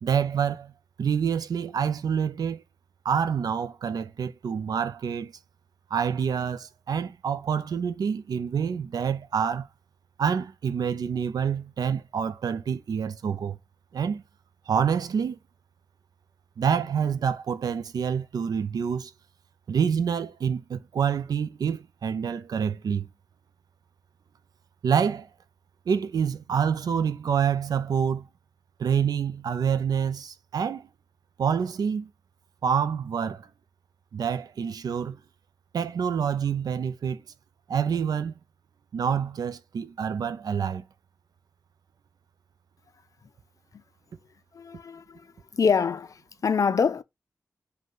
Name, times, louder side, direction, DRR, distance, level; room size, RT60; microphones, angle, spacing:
voice 1, 0.0-0.7 1.0-2.6 3.0-5.3 5.9-9.7 10.2-13.6 13.9-14.2 14.7-15.4 16.6-19.1 19.7-23.1 24.8-25.3 25.9-28.3 28.8-30.9 31.4-32.1 32.6-33.5 34.1-35.2 35.7-37.2 37.7-38.3 38.9-40.8, right 7 dB, 85° right, 0.4 m, -27 dB
voice 2, 44.5-45.0 45.5-47.0, left 6 dB, 60° left, 0.4 m, -25 dB
5.2 x 2.2 x 3.8 m
wide cardioid pair, 95°, 7 cm